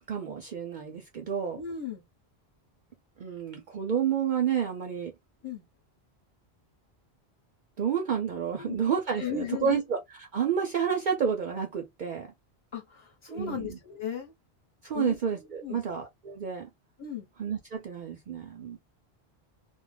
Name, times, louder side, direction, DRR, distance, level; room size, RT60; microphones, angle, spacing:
voice 1, 0.1-1.6 3.2-5.1 7.8-12.3 13.3-13.8 14.8-16.7 17.4-18.8, right 7 dB, 60° right, 0.6 m, -30 dB
voice 2, 1.6-2.0 5.4-5.6 8.6-8.9 9.2-9.8 12.7-14.3 14.9-15.2 15.6-15.9 17.0-17.3, left 8 dB, 30° left, 1.0 m, -36 dB
2.3 x 2.1 x 3.2 m
omnidirectional pair, 1.1 m